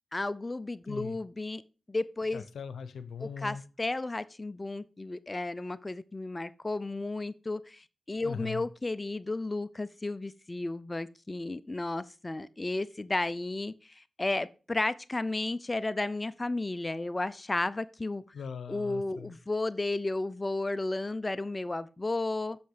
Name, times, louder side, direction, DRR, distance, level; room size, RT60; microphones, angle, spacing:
voice 1, 0.1-1.6 1.9-2.5 3.2-18.2 18.7-22.6, left 2 dB, 30° left, 0.6 m, -33 dB
voice 2, 2.3-3.6 8.2-8.6 18.3-19.3, left 6 dB, 80° left, 0.9 m, -40 dB
7.9 x 6.7 x 5.1 m
cardioid pair, 45°, 0 cm